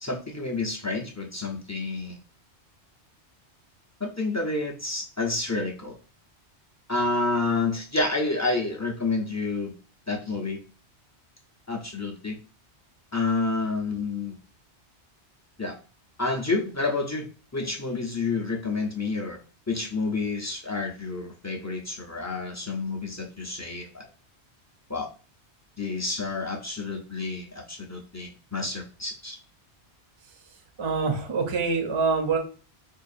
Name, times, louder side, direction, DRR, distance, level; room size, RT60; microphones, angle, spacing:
voice 1, 0.0-2.2 4.0-6.0 6.9-9.7 10.1-10.6 11.7-12.4 13.1-14.4 15.6-15.8 16.2-17.3 17.5-19.4 19.7-24.1 24.9-25.1 25.8-29.4, left 3 dB, 25° left, 0 dB, 0.4 m, -29 dB
voice 2, 30.8-32.4, right 4 dB, 35° right, 4 dB, 0.6 m, -25 dB
4.6 x 2.4 x 2.6 m, 0.36 s
omnidirectional pair, 1.2 m